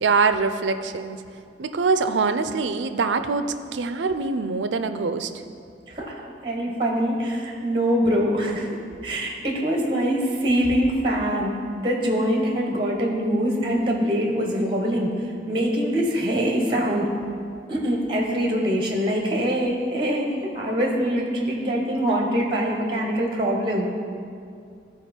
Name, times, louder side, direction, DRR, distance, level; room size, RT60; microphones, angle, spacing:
voice 1, 0.0-1.2 1.6-5.3, right 4 dB, 90° right, 10 dB, 0.5 m, -24 dB
voice 2, 5.9-8.8 9.0-17.1 17.7-23.9, equal, 30° right, 0 dB, 1.2 m, -24 dB
14.5 x 4.8 x 4.4 m, 2.4 s
head